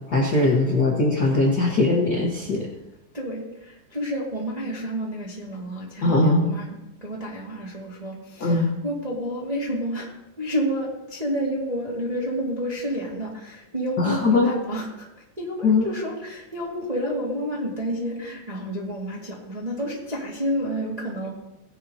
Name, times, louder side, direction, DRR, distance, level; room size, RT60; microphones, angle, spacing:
voice 1, 0.1-2.7 6.0-6.5 8.4-8.7 14.0-14.5 15.6-15.9, left 2 dB, 80° left, -3 dB, 0.9 m, -20 dB
voice 2, 3.1-6.7 7.0-10.1 10.4-15.1 15.4-21.3, equal, 15° right, -5 dB, 1.4 m, -30 dB
16.5 x 10.5 x 2.8 m, 0.94 s
omnidirectional pair, 4.0 m